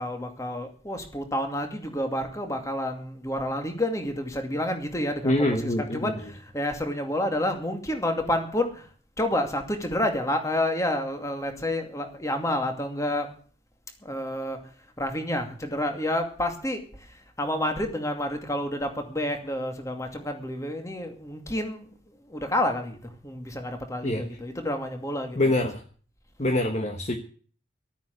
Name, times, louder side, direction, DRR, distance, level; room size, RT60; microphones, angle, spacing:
voice 1, 0.0-8.9 9.2-13.3 14.0-14.6 15.0-25.4, left 1 dB, 15° left, 5 dB, 2.4 m, -29 dB
voice 2, 5.2-6.1 24.0-24.2 25.3-25.8 26.4-27.2, left 1 dB, 35° left, 3 dB, 1.4 m, -25 dB
13.5 x 9.3 x 8.3 m, 0.43 s
head